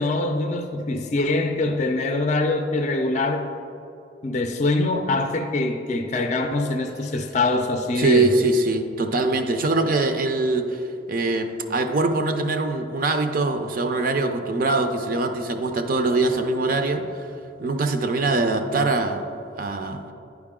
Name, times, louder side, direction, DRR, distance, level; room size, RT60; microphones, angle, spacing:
voice 1, 0.0-3.5 4.2-8.3, left 2 dB, 40° left, 5 dB, 0.5 m, -24 dB
voice 2, 8.0-10.8 11.1-17.1 17.6-19.3 19.6-20.0, right 2 dB, 50° right, 6 dB, 0.5 m, -23 dB
10.5 x 4.7 x 3.7 m, 2.7 s
head